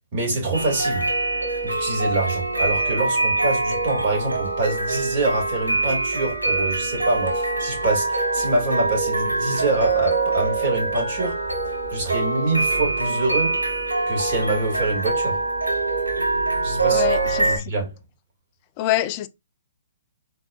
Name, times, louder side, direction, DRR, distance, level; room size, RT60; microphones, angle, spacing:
voice 1, 0.1-1.1 1.6-11.4 11.9-13.6 14.1-15.4 16.6-17.1 17.4-17.9, right 2 dB, 40° right, 2.7 m, -25 dB
sound 1, 0.5-17.6, right 3 dB, 85° right, 1.5 m, -24 dB
voice 2, 16.9-17.7 18.8-19.3, left 14 dB, 35° left, 0.5 m, -25 dB
4.4 x 3.9 x 2.5 m
figure-of-eight pair, 125°, 0 cm